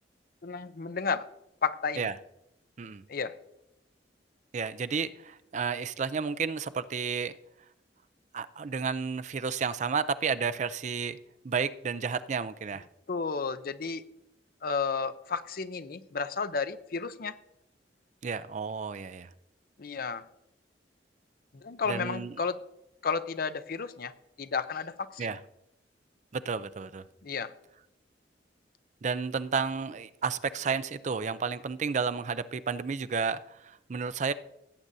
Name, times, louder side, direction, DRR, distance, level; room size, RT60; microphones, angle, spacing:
voice 1, 0.4-1.2 1.6-2.1 3.1-3.4 13.1-14.0 14.6-17.3 19.8-20.2 21.5-22.6 23.0-24.1 24.4-25.3 27.2-27.5, left 5 dB, 55° left, 12 dB, 0.6 m, -32 dB
voice 2, 4.5-7.3 8.3-11.2 11.4-12.9 18.2-19.3 21.9-22.3 25.2-25.4 26.3-27.0 29.0-34.3, right 5 dB, 40° right, 14 dB, 0.4 m, -31 dB
17.5 x 8.6 x 2.7 m, 0.83 s
head